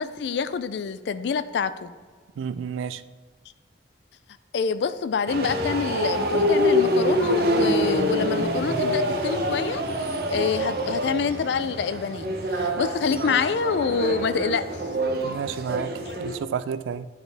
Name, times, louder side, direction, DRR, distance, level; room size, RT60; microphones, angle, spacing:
voice 1, 0.0-1.9 4.5-9.8 10.3-14.7 16.1-16.2, left 5 dB, 65° left, 0.3 m, -26 dB
voice 2, 2.4-3.0 15.2-17.1, right 7 dB, 90° right, 0.3 m, -31 dB
sound 1, 5.3-16.4, equal, 55° right, 0.7 m, -25 dB
9.9 x 4.3 x 3.4 m
head